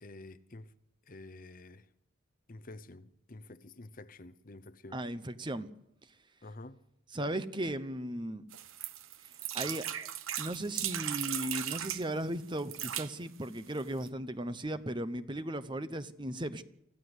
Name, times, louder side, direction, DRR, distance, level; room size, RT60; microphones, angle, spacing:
voice 1, 0.0-0.7 1.1-1.9 2.5-5.0 6.4-6.8, left 2 dB, 40° left, 0.8 m, -49 dB
voice 2, 4.9-5.7 7.1-8.4 9.5-10.1 10.4-16.6, right 1 dB, 20° right, 0.9 m, -36 dB
sound 1, 8.5-12.0 12.6-13.1 13.8-13.9 14.1-14.2, right 11 dB, 75° right, 1.0 m, -37 dB
25.5 x 15.0 x 8.1 m
head